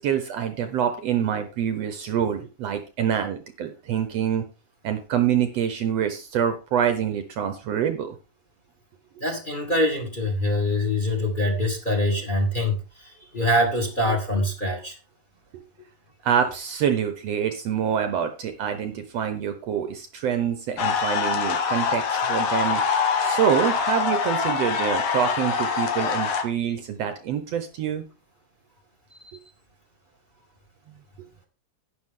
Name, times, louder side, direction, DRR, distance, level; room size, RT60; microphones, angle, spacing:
voice 1, 0.0-4.4 4.8-8.2 14.1-14.2 16.3-22.8 23.2-28.0, right 8 dB, 65° right, 8 dB, 1.9 m, -26 dB
voice 2, 9.2-15.0, left 1 dB, 20° left, 3 dB, 2.2 m, -24 dB
sound 1, 20.8-26.4, left 5 dB, 80° left, 2.7 m, -24 dB
11.0 x 9.4 x 3.8 m, 0.32 s
omnidirectional pair, 3.4 m